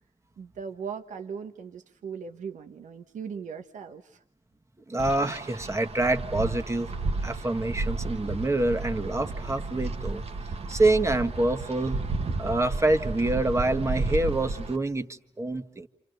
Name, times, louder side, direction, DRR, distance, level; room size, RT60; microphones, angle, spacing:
voice 1, 0.4-4.2, right 6 dB, 85° right, 6 dB, 1.2 m, -39 dB
voice 2, 4.9-6.9 7.2-10.2 10.7-12.0 12.4-15.9, right 2 dB, 25° right, 6 dB, 1.6 m, -26 dB
Wind, 5.0-14.8, right 3 dB, 55° right, 1.4 m, -32 dB
29.0 x 28.0 x 6.7 m, 0.70 s
cardioid pair, 75°, 12 cm